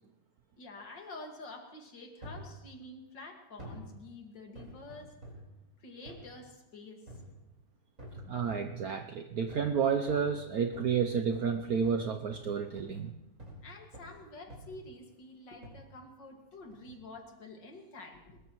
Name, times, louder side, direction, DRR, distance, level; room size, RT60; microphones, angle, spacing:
voice 1, 0.6-5.1 5.8-7.2 13.6-18.4, left 2 dB, 65° left, 3 dB, 2.6 m, -48 dB
sound 1, 2.2-2.5 3.6-3.9 4.6-5.5 6.1-6.3 7.1-7.4 8.0-8.8 9.5-9.8 10.1-13.7 13.9-14.2 14.5-14.9 15.6-15.9 16.7-17.0 17.6-17.7, equal, 40° right, 4.9 m, -48 dB
voice 2, 8.3-13.1, right 6 dB, 65° right, 5 dB, 1.0 m, -31 dB
22.0 x 20.5 x 3.1 m, 0.96 s
omnidirectional pair, 2.1 m